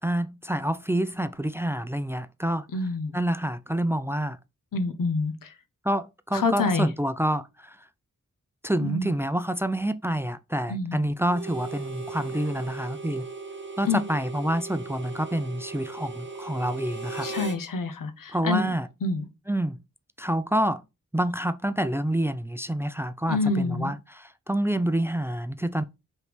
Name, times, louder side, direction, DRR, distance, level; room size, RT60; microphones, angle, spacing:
voice 1, 0.0-2.7 3.1-4.4 5.8-7.9 8.6-13.3 13.8-17.3 18.3-18.9 19.5-19.8 20.2-20.8 21.1-25.8, right 1 dB, 10° right, 0.4 m, -27 dB
voice 2, 2.7-3.2 4.7-5.5 6.3-6.9 8.8-9.1 10.7-11.0 13.8-14.0 17.2-18.6 19.0-19.2 23.3-23.9, left 3 dB, 90° left, 0.7 m, -27 dB
Harmonica, 11.3-17.6, right 3 dB, 35° right, 1.0 m, -38 dB
4.9 x 3.2 x 3.3 m
cardioid pair, 45°, 32 cm